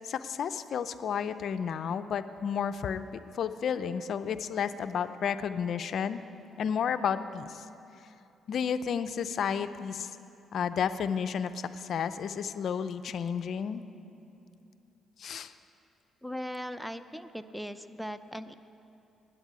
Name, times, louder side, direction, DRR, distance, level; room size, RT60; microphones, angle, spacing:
voice 1, 0.1-3.0 3.3-6.2 6.6-7.6 8.5-10.1 10.5-13.8 15.2-15.5, left 7 dB, 60° left, 11 dB, 0.4 m, -32 dB
voice 2, 16.2-18.5, equal, ahead, 12 dB, 0.5 m, -39 dB
9.9 x 8.8 x 9.4 m, 2.8 s
cardioid pair, 90°, 0 cm